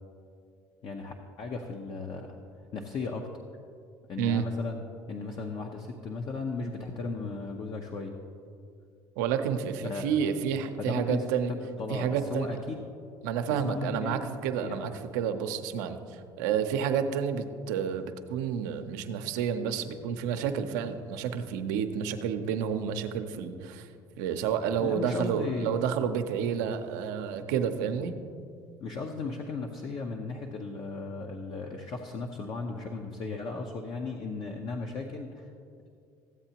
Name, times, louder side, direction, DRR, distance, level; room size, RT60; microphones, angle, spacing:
voice 1, 0.8-2.4 2.7-3.3 4.1-8.2 9.8-10.1 10.8-12.8 13.6-14.9 24.8-25.7 28.8-35.5, left 4 dB, 50° left, 3 dB, 0.8 m, -36 dB
voice 2, 9.2-11.5 11.9-12.5 13.2-23.9 24.2-28.1, right 7 dB, 90° right, 7 dB, 0.6 m, -30 dB
14.5 x 8.0 x 2.9 m, 2.4 s
supercardioid pair, 90°, 9 cm